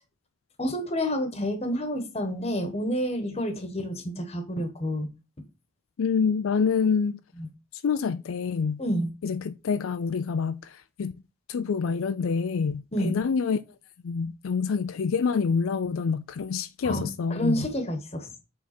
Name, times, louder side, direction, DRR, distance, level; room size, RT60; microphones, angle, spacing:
voice 1, 0.6-5.1 7.4-7.5 8.8-9.1 12.9-13.2 16.8-18.4, equal, 30° left, 1.2 m, -29 dB
voice 2, 6.0-7.2 7.7-8.8 9.2-11.1 11.5-13.6 14.0-17.7, left 5 dB, 80° left, 0.4 m, -27 dB
7.4 x 3.6 x 4.2 m
head